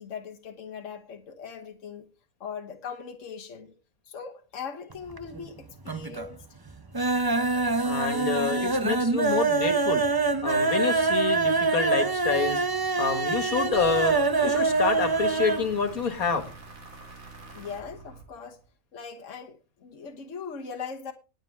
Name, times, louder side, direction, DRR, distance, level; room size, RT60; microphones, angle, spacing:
voice 1, 0.0-2.1 2.4-3.7 4.1-6.4 17.5-18.6 18.9-21.1, left 6 dB, 60° left, 1.5 m, -40 dB
sound 1, 4.9-5.5 5.8-6.3 6.7-15.7 16.0-16.1 16.4-16.5, right 3 dB, 25° right, 0.6 m, -25 dB
voice 2, 7.8-10.0 10.4-12.6 12.9-14.1 14.4-16.5, left 5 dB, 85° left, 2.3 m, -27 dB
sound 2, 13.7-18.7, right 3 dB, 75° right, 3.6 m, -46 dB
19.5 x 7.4 x 3.5 m
omnidirectional pair, 1.5 m